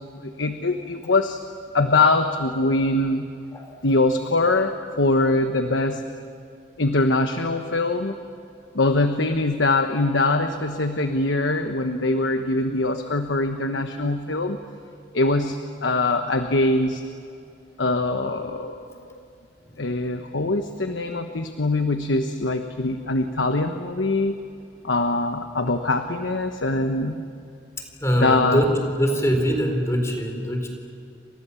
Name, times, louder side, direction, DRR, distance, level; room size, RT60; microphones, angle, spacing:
voice 1, 0.2-1.4 1.7-3.3 3.8-6.2 6.8-8.1 8.7-14.6 15.1-17.0 17.8-19.1 19.8-24.3 24.8-27.2 28.2-28.7, left 2 dB, 85° left, 7 dB, 1.2 m, -23 dB
voice 2, 28.0-30.7, equal, 15° left, 3 dB, 4.0 m, -23 dB
30.0 x 25.5 x 7.1 m, 2.6 s
head